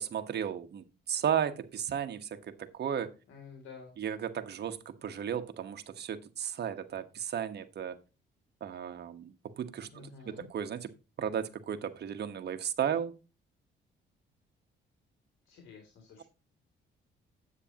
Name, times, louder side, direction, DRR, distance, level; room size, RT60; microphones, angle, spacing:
voice 1, 0.0-3.1 4.0-8.0 8.6-10.9 11.2-13.1, right 8 dB, 55° right, 1.3 m, -34 dB
voice 2, 3.3-3.9 9.9-10.5 15.4-16.2, left 5 dB, 80° left, 2.9 m, -50 dB
9.7 x 8.6 x 2.9 m
cardioid pair, 90°, 20 cm